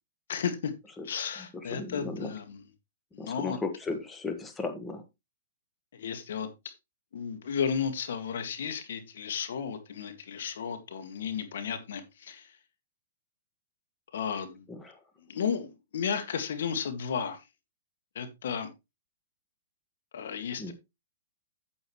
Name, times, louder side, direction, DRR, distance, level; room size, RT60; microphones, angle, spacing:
voice 1, 0.3-0.7 1.0-2.7 3.1-3.6 5.9-6.7 7.1-12.6 14.1-14.7 15.2-17.5 18.2-18.7 20.1-20.7, left 7 dB, 70° left, 1.9 m, -33 dB
voice 2, 1.7-2.3 3.2-5.0 20.6-20.7, left 3 dB, 10° left, 1.5 m, -35 dB
9.0 x 8.9 x 3.1 m
hypercardioid pair, 135°, 0 cm